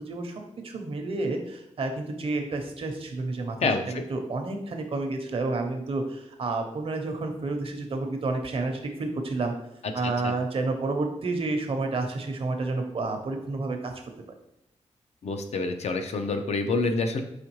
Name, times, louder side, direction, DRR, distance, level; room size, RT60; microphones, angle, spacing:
voice 1, 0.0-9.5 9.9-13.9, right 3 dB, 55° right, 4 dB, 0.7 m, -30 dB
voice 2, 3.6-4.0 10.2-10.3 15.2-17.2, left 3 dB, 65° left, 6 dB, 0.5 m, -27 dB
4.9 x 3.5 x 3.1 m, 0.86 s
wide cardioid pair, 135°, 12 cm